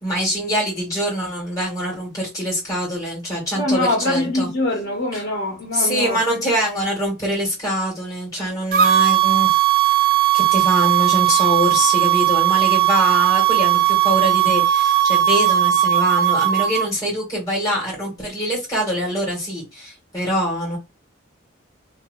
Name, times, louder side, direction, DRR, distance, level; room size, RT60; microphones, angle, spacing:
voice 1, 0.0-4.5 5.1-5.2 5.7-9.6 10.3-20.8, equal, 15° left, 1.9 m, -24 dB
voice 2, 3.5-6.2, left 1 dB, 65° left, 1.5 m, -23 dB
sound 1, 8.7-16.9, right 12 dB, 45° right, 0.3 m, -17 dB
2.9 x 2.8 x 2.6 m
head